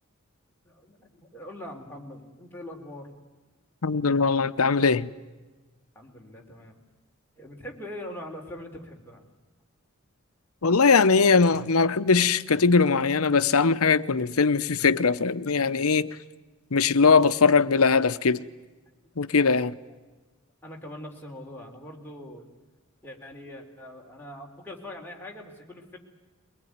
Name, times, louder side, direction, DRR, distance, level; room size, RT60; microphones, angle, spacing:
voice 1, 0.6-3.1 5.9-6.8 7.4-9.3 19.9-20.0 20.6-22.5 23.0-26.0, left 1 dB, 10° left, 3.7 m, -42 dB
voice 2, 3.8-5.1 10.6-16.1 16.7-18.4 19.2-19.7, left 4 dB, 85° left, 0.9 m, -21 dB
23.0 x 19.5 x 9.5 m
head